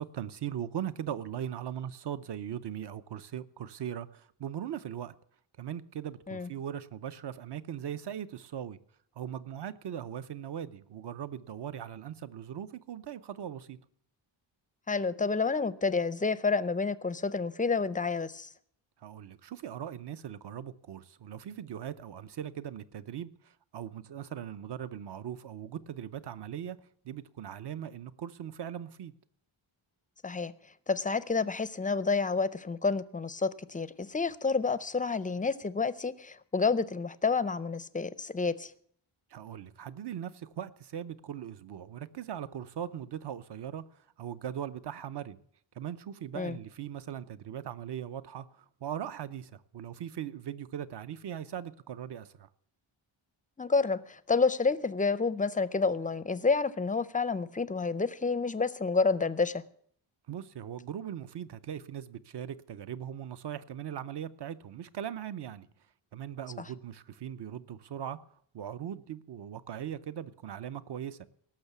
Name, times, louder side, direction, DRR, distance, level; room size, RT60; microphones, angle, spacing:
voice 1, 0.0-5.1 5.6-8.8 9.2-13.8 19.0-23.3 23.7-26.8 27.0-29.1 39.3-43.8 44.2-45.4 45.8-52.5 60.3-65.7 66.1-68.2 68.5-71.2, right 9 dB, 55° right, 0.8 m, -39 dB
voice 2, 14.9-18.5 30.2-30.5 30.9-38.7 46.3-46.6 53.6-59.6, left 4 dB, 15° left, 0.4 m, -29 dB
18.0 x 6.6 x 8.2 m
wide cardioid pair, 145°, 49 cm